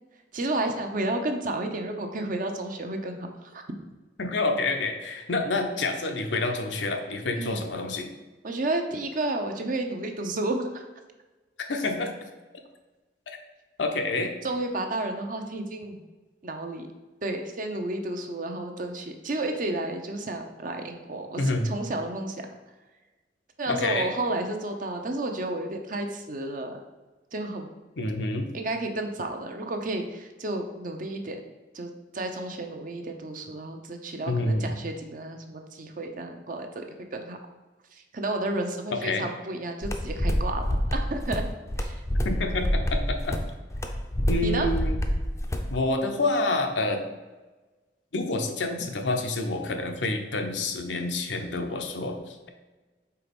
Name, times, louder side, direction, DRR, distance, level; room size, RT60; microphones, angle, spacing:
voice 1, 0.3-3.7 7.3-7.6 8.4-10.8 14.4-16.0 16.4-16.9 17.2-22.4 23.6-26.8 27.3-27.7 28.5-31.4 31.7-36.7 37.1-37.4 37.9-40.7 40.9-41.5 41.8-42.0 44.4-44.7, right 2 dB, 50° right, 4 dB, 0.7 m, -31 dB
voice 2, 4.2-8.1 11.7-12.1 13.8-14.3 21.4-21.7 23.7-24.1 28.0-28.5 34.3-34.7 39.0-39.2 42.2-43.4 44.3-45.0 45.7-47.0 48.1-52.5, left 2 dB, 85° left, 4 dB, 0.8 m, -28 dB
sound 1, 39.8-45.7, equal, 15° left, 0.5 m, -27 dB
4.7 x 4.0 x 5.2 m, 1.2 s
head